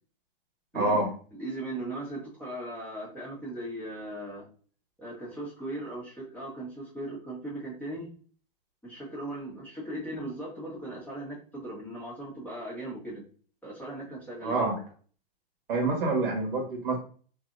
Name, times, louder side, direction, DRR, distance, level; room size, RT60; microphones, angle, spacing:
voice 1, 0.7-1.1 14.4-14.8 15.7-17.0, right 2 dB, 65° right, 1 dB, 1.4 m, -27 dB
voice 2, 1.3-4.5 5.0-8.2 8.8-13.2 13.6-14.6, right 1 dB, 5° left, -7 dB, 1.4 m, -38 dB
3.2 x 2.7 x 2.6 m, 0.41 s
hypercardioid pair, 125°, 29 cm